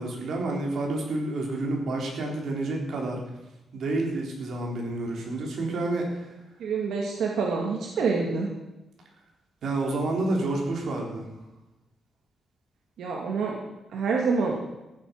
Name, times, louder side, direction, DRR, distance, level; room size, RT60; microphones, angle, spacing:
voice 1, 0.0-3.2 3.7-6.3 9.6-11.3, right 2 dB, 60° right, 0 dB, 3.8 m, -29 dB
voice 2, 6.6-8.5 13.0-13.6 13.9-14.6, right 4 dB, 90° right, 0 dB, 2.2 m, -26 dB
14.5 x 8.4 x 7.8 m, 0.99 s
wide cardioid pair, 170°, 0 cm